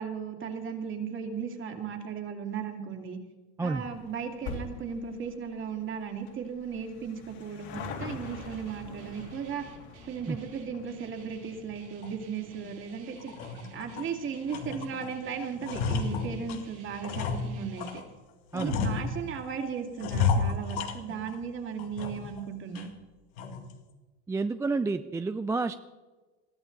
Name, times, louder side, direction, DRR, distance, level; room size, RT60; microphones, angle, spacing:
voice 1, 0.0-3.2 3.6-9.7 10.1-13.3 13.7-18.0 18.5-22.9, right 6 dB, 40° right, 4 dB, 2.6 m, -36 dB
sound 1, 3.7-16.4 16.7-16.8 17.7-17.8 18.0-18.1 18.4-18.5, left 4 dB, 60° left, 3.0 m, -46 dB
Guitar, 8.2-18.0, right 5 dB, 90° right, 2.9 m, -53 dB
sound 2, 12.0-12.2 12.7-12.8 13.2-14.1 14.5-15.1 15.4-18.0 18.5-19.5 20.0-21.4 21.8-22.4 22.8-22.9 23.4-23.7, left 5 dB, 80° left, 2.1 m, -32 dB
voice 2, 24.3-25.7, right 3 dB, 10° right, 10 dB, 0.4 m, -29 dB
21.0 x 14.0 x 4.0 m, 1.2 s
supercardioid pair, 120°, 32 cm